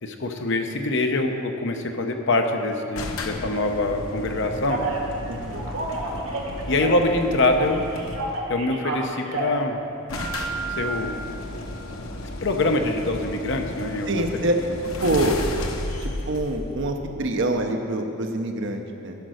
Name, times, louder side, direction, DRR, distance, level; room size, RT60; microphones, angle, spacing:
voice 1, 0.0-4.9 6.7-7.9 8.5-9.8 10.8-11.2 12.4-14.2, left 2 dB, 60° left, 5 dB, 0.8 m, -24 dB
sound 1, 3.0-8.5 9.5-9.6 9.7-9.8 10.1-17.6, left 2 dB, 90° left, 0.9 m, -34 dB
Telephone, 4.7-5.0 5.5-7.2 7.4-9.6 10.2-10.9, right 4 dB, 90° right, 1.5 m, -31 dB
voice 2, 5.3-5.6 14.1-14.6 15.0-15.4 16.0-19.2, right 1 dB, 60° right, 4 dB, 0.9 m, -25 dB
13.0 x 5.3 x 6.3 m, 2.6 s
head